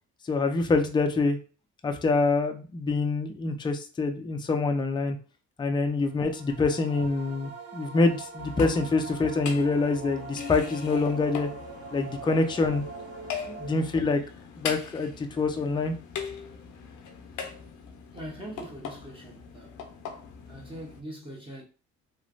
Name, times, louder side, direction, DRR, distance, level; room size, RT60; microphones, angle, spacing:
voice 1, 0.2-1.4 1.8-5.2 5.6-11.5 11.9-12.8 13.5-14.2 14.6-15.9, left 3 dB, 15° left, 0.4 m, -26 dB
sound 1, 6.1-14.3, right 4 dB, 55° right, 0.7 m, -43 dB
sound 2, 8.4-21.0, left 6 dB, 75° left, 0.6 m, -41 dB
voice 2, 18.1-19.8 20.5-21.6, right 1 dB, 15° right, 0.9 m, -42 dB
3.1 x 2.3 x 2.5 m
cardioid pair, 90°, 30 cm